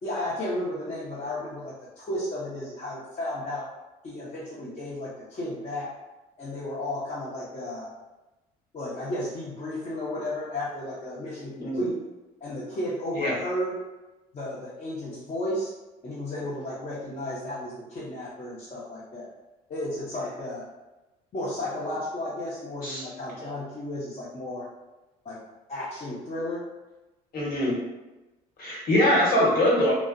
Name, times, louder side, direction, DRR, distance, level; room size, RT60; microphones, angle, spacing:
voice 1, 0.0-3.7 4.0-5.9 6.4-7.9 8.7-12.0 12.4-13.7 14.3-15.7 16.0-19.3 19.7-20.6 21.3-24.7 25.2-25.4 25.7-26.6, left 1 dB, 40° left, -8 dB, 0.7 m, -33 dB
voice 2, 27.3-27.7 28.6-29.9, left 1 dB, 55° left, -5 dB, 1.1 m, -22 dB
2.5 x 2.0 x 2.4 m, 1.1 s
supercardioid pair, 70°, 18 cm